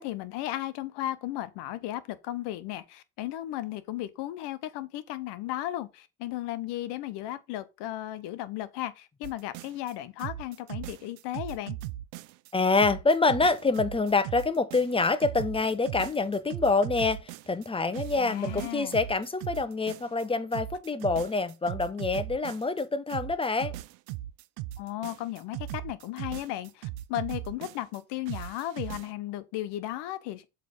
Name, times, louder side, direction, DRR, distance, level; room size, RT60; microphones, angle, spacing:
voice 1, 0.0-11.8 18.2-19.0 24.8-30.5, left 14 dB, 65° left, 1.0 m, -35 dB
sound 1, 9.2-9.9 10.2-12.5 12.8-17.7 17.9-20.2 20.5-22.8 23.1-28.0 28.3-29.1, right 15 dB, 65° right, 0.6 m, -38 dB
voice 2, 12.5-23.8, left 3 dB, 10° left, 0.7 m, -26 dB
7.6 x 3.4 x 5.0 m
hypercardioid pair, 75°, 45 cm